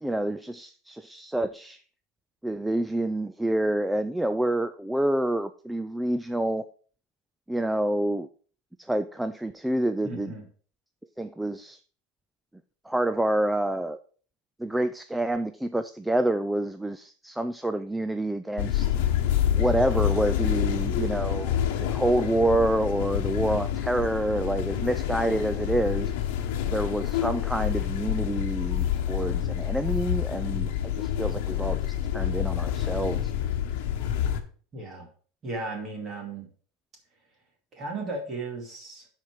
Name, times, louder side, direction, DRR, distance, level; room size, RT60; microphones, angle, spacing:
voice 1, 0.0-1.8 2.4-6.7 7.5-8.3 8.8-10.3 11.2-11.8 12.8-14.0 14.6-18.9 19.5-26.1 26.7-33.3, right 1 dB, 5° right, 10 dB, 0.3 m, -28 dB
voice 2, 10.0-10.5 24.7-24.8 34.7-35.1 35.4-36.5 37.7-39.1, right 3 dB, 25° right, 1 dB, 2.4 m, -35 dB
sound 1, 18.6-34.4, left 10 dB, 65° left, 1.1 m, -27 dB
10.5 x 4.5 x 4.7 m, 0.43 s
supercardioid pair, 165°, 0 cm